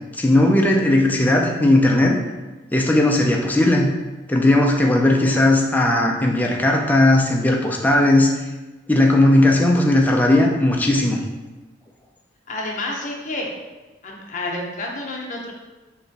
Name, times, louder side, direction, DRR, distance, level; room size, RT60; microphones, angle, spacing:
voice 1, 0.1-2.2 2.7-3.9 4.3-8.3 8.9-11.2, left 1 dB, 10° left, 0 dB, 0.4 m, -17 dB
voice 2, 12.5-13.5 14.0-15.5, left 2 dB, 40° left, -1 dB, 0.7 m, -29 dB
3.4 x 3.0 x 4.0 m, 1.2 s
head